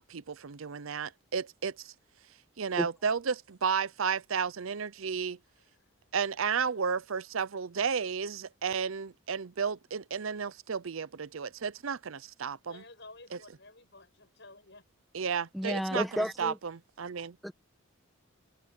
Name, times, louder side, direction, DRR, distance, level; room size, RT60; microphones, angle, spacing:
voice 1, 0.0-1.9 2.6-5.4 6.1-12.8 15.1-17.4, right 6 dB, 70° right, 0.6 m, -33 dB
voice 2, 5.6-5.9 12.7-14.8, left 2 dB, 55° left, 7.8 m, -53 dB
voice 3, 15.5-16.6 17.4-17.5, equal, ahead, 1.2 m, -31 dB
open air
head